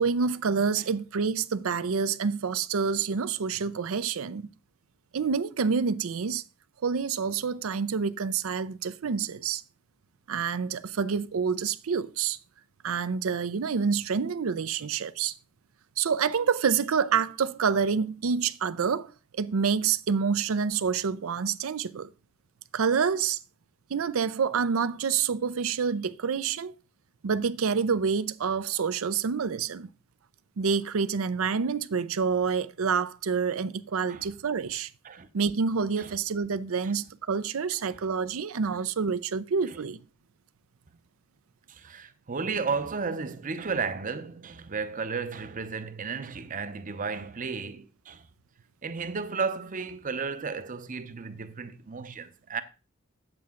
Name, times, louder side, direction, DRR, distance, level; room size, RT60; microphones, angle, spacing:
voice 1, 0.0-4.5 5.1-6.4 6.8-9.6 10.3-12.4 12.8-15.3 16.0-22.1 22.7-23.4 23.9-26.7 27.2-29.9 30.6-34.9 35.3-40.0, right 6 dB, 80° right, 0.5 m, -27 dB
voice 2, 41.7-48.3 48.8-52.6, right 5 dB, 40° right, 0.7 m, -34 dB
8.5 x 7.6 x 3.7 m
head